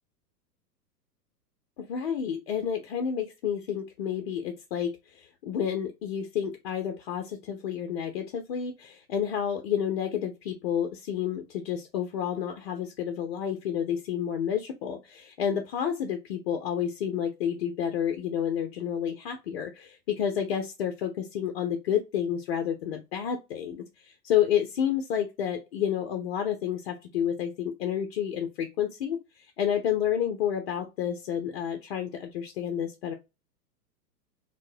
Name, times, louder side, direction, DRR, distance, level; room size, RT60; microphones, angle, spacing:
voice 1, 1.8-29.2 29.6-33.1, left 9 dB, 40° left, 5 dB, 0.5 m, -30 dB
4.5 x 2.1 x 2.5 m, 0.25 s
figure-of-eight pair, 105°, 49 cm